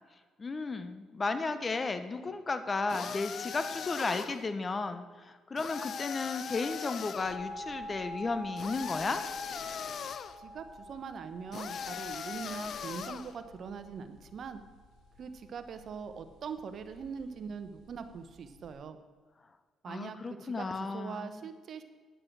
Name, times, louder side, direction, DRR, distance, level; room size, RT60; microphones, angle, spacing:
voice 1, 0.4-9.2 19.9-21.4, left 3 dB, 30° left, 10 dB, 0.9 m, -34 dB
sound 1, 2.9-4.5 5.6-7.4 8.6-10.4 11.5-13.3, left 7 dB, 55° left, 0.6 m, -39 dB
sound 2, 7.2-18.7, equal, 85° left, 3.3 m, -47 dB
voice 2, 10.4-14.6 15.2-19.0 19.8-21.8, right 6 dB, 55° right, 10 dB, 1.0 m, -42 dB
10.5 x 7.5 x 6.3 m, 1.5 s
cardioid pair, 80°, 0 cm